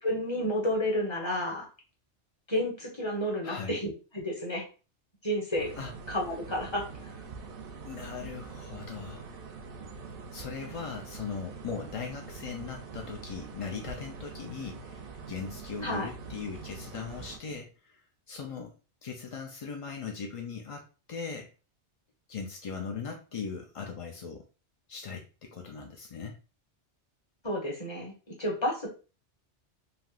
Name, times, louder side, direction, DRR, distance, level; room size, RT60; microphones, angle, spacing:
voice 1, 0.0-1.6 2.5-4.6 5.2-5.8 6.1-6.9 15.8-16.1 27.4-28.1 28.4-28.9, left 1 dB, 25° left, -1 dB, 1.0 m, -31 dB
voice 2, 3.4-3.8 5.8-5.9 7.8-9.3 10.3-18.7 19.0-21.5 22.3-24.5 24.9-26.4, left 5 dB, 55° left, 2 dB, 0.3 m, -39 dB
sound 1, 5.6-17.4, right 4 dB, 60° right, 0.7 m, -44 dB
3.3 x 2.7 x 2.4 m, 0.34 s
omnidirectional pair, 1.2 m